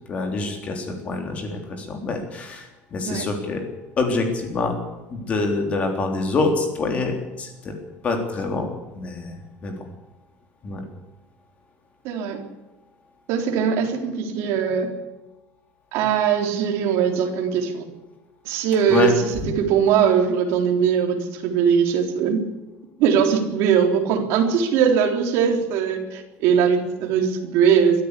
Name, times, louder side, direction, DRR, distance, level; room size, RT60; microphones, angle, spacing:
voice 1, 0.1-3.6 4.0-4.8 5.1-7.7 8.0-8.7 9.0-9.8 10.6-10.8 18.9-19.1, left 3 dB, 25° left, 4 dB, 3.6 m, -25 dB
voice 2, 12.0-12.4 13.3-14.9 15.9-17.8 18.4-19.1 19.5-22.5 23.0-28.0, right 7 dB, 50° right, 3 dB, 3.7 m, -20 dB
23.0 x 13.5 x 8.5 m, 1.1 s
cardioid pair, 180°, 6 cm